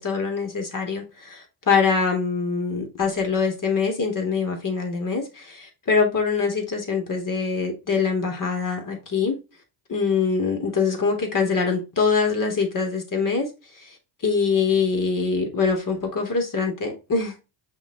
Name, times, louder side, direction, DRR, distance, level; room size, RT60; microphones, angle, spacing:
voice 1, 0.0-9.4 9.9-13.5 13.8-13.9 14.2-17.3, left 5 dB, 40° left, 3 dB, 3.2 m, -24 dB
5.8 x 5.5 x 3.0 m, 0.28 s
supercardioid pair, 75°, 48 cm